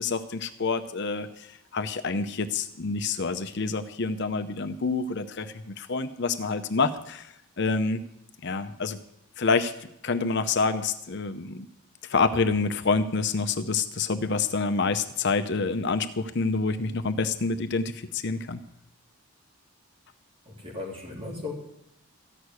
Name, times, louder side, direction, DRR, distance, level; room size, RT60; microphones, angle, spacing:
voice 1, 0.0-8.0 8.4-9.0 9.4-11.7 12.0-18.6, left 4 dB, 50° left, 9 dB, 0.7 m, -27 dB
voice 2, 20.4-21.5, left 3 dB, 25° right, -1 dB, 3.1 m, -36 dB
14.5 x 6.5 x 9.5 m, 0.78 s
head